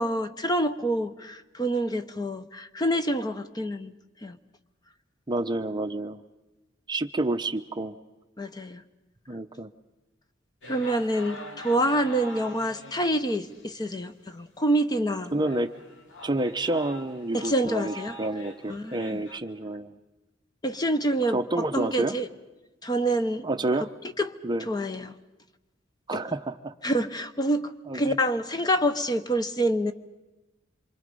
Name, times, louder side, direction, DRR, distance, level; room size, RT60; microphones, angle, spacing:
voice 1, 0.0-3.9 4.2-4.4 8.4-8.8 10.7-15.3 17.3-18.2 18.7-19.2 20.6-22.3 22.8-23.5 24.2-24.3 24.7-25.1 26.1-26.2 26.8-29.9, right 1 dB, 20° left, 9 dB, 0.8 m, -27 dB
voice 2, 5.3-6.2 6.9-8.0 9.3-9.7 15.3-15.7 16.2-19.9 21.3-22.2 23.4-23.9 24.4-24.7 26.1-26.7 27.9-28.2, right 2 dB, 25° right, 9 dB, 0.7 m, -29 dB
sound 1, 10.6-13.8 14.3-14.4 14.9-15.0 15.4-19.4, equal, 85° left, 2.6 m, -44 dB
26.5 x 24.5 x 5.4 m, 1.1 s
head